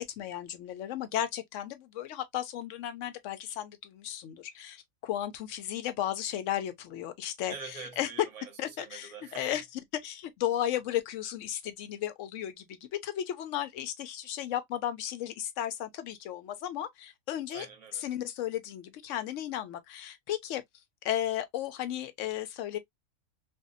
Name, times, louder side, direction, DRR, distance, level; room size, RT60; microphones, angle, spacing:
voice 1, 0.0-7.5 8.0-8.1 8.6-9.1 9.4-9.6 10.0-17.7 18.0-20.6 21.0-22.8, left 11 dB, 70° left, 0.8 m, -34 dB
voice 2, 7.5-9.6 17.5-18.1, right 5 dB, 30° right, 0.7 m, -45 dB
2.6 x 2.3 x 2.5 m
omnidirectional pair, 1.5 m